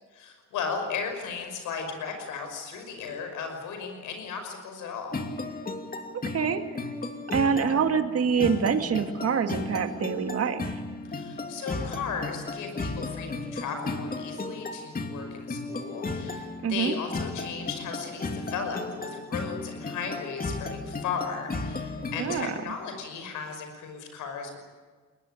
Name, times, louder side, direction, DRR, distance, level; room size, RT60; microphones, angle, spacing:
voice 1, 0.1-5.1 11.0-24.6, left 6 dB, 90° left, 5 dB, 5.8 m, -36 dB
sound 1, 5.1-22.6, left 3 dB, 30° left, 2.8 m, -35 dB
voice 2, 6.1-6.6 7.3-10.8 16.6-16.9 22.2-22.5, right 6 dB, 50° right, 7 dB, 2.1 m, -26 dB
22.0 x 20.5 x 9.2 m, 1.4 s
cardioid pair, 90°, 30 cm